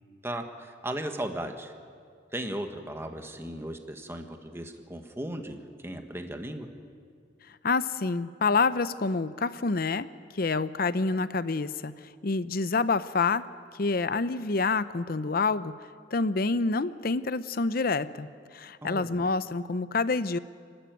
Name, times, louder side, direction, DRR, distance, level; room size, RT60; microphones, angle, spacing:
voice 1, 0.2-1.7 2.3-6.7 18.8-19.3, right 1 dB, 15° right, 5 dB, 1.4 m, -36 dB
voice 2, 7.6-13.5 13.7-15.7 16.1-18.3 18.5-20.4, left 4 dB, 55° left, 14 dB, 0.7 m, -27 dB
30.0 x 12.5 x 9.2 m, 2.2 s
head